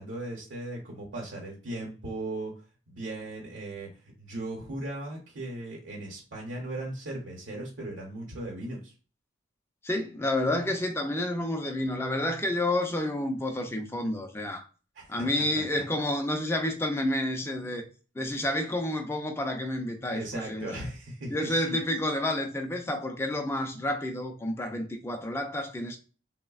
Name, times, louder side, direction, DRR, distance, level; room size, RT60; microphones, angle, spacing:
voice 1, 0.0-2.5 2.9-3.9 4.2-8.9 14.9-15.1 15.7-15.8 20.1-21.8, right 1 dB, 70° right, 0.8 m, -37 dB
voice 2, 9.8-14.7 15.1-17.9 18.2-20.8 21.3-26.0, left 1 dB, 10° left, 0.4 m, -30 dB
3.2 x 2.1 x 2.3 m
head